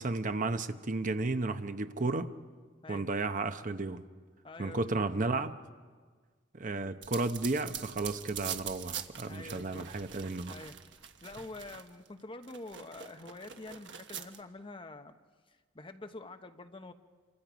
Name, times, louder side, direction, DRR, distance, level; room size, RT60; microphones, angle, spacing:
voice 1, 0.0-2.3 2.9-4.0 4.6-5.5 6.5-10.5, right 3 dB, 45° right, 9 dB, 0.8 m, -33 dB
voice 2, 4.4-5.1 9.3-9.9 10.5-10.8 11.2-15.2 15.5-16.9, left 2 dB, 30° left, 7 dB, 1.0 m, -46 dB
sound 1, 7.0-12.1 12.4-14.4, right 9 dB, 70° right, 1.3 m, -44 dB
28.5 x 24.5 x 5.1 m, 1.5 s
head